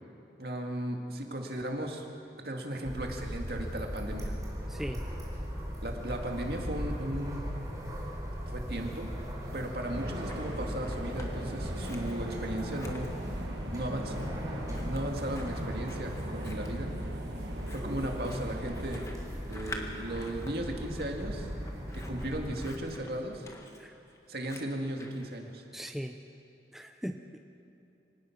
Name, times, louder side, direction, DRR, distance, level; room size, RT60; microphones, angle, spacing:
voice 1, 0.4-2.0 2.4-4.3 5.8-7.4 8.5-9.1 9.5-13.1 13.7-14.3 14.8-16.9 17.7-19.0 19.5-21.5 21.9-23.4 24.3-25.6, right 1 dB, 60° right, 2 dB, 2.3 m, -36 dB
sound 1, 2.8-22.7, equal, 20° right, 4.0 m, -38 dB
voice 2, 4.7-5.0 23.8-23.9 25.7-26.2 26.7-27.4, equal, ahead, 5 dB, 0.6 m, -39 dB
Scissors, 9.7-11.3 11.6-25.3, left 2 dB, 15° left, 1.5 m, -49 dB
sound 2, 9.8-19.1, right 1 dB, 85° right, 1.6 m, -41 dB
25.5 x 17.5 x 6.0 m, 2.7 s
head